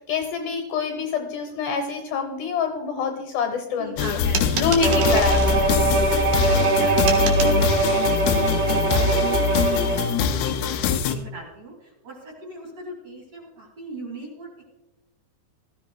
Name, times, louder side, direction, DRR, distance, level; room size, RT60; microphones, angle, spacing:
voice 1, 0.0-4.2 4.6-5.6, left 6 dB, 70° left, 5 dB, 2.4 m, -26 dB
voice 2, 3.8-4.9 5.3-14.6, right 1 dB, 50° right, -1 dB, 2.2 m, -39 dB
sound 1, 4.0-11.2, left 6 dB, 85° left, 2.2 m, -23 dB
sound 2, 4.3-5.5 7.1-7.6, right 6 dB, 65° right, 2.0 m, -29 dB
Bowed string instrument, 4.8-10.2, right 4 dB, 85° right, 4.2 m, -22 dB
18.5 x 13.5 x 2.2 m, 1.0 s
omnidirectional pair, 5.2 m